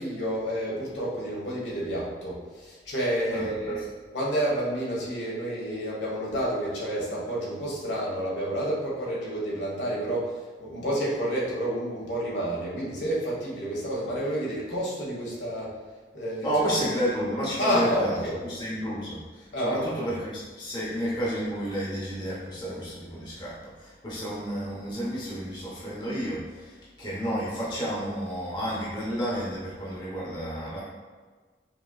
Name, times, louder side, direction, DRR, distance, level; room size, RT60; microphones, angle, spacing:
voice 1, 0.0-3.8 4.1-15.7 16.1-16.5 17.6-18.4 19.5-20.1, equal, 80° left, -5 dB, 1.4 m, -29 dB
voice 2, 3.3-3.8 16.4-18.2 18.5-30.8, equal, 25° left, -7 dB, 0.8 m, -31 dB
5.4 x 2.9 x 2.3 m, 1.4 s
head